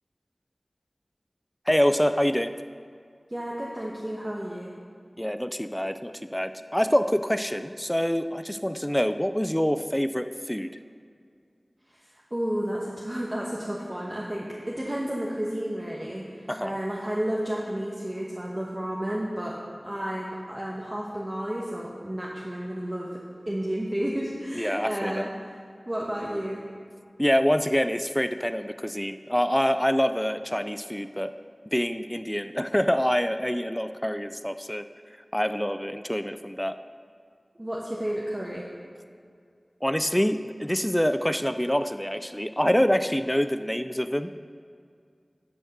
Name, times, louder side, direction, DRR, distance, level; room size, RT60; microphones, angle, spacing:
voice 1, 1.7-2.5 5.2-10.7 16.5-16.8 24.6-25.3 27.2-31.3 31.7-34.8 35.3-36.8 39.8-44.4, equal, 10° left, 10 dB, 0.3 m, -26 dB
voice 2, 3.3-4.7 11.9-19.6 19.8-25.6 25.9-26.6 37.5-38.7, equal, 25° right, -3 dB, 1.1 m, -32 dB
10.5 x 5.3 x 6.6 m, 2.2 s
wide cardioid pair, 50°, 0 cm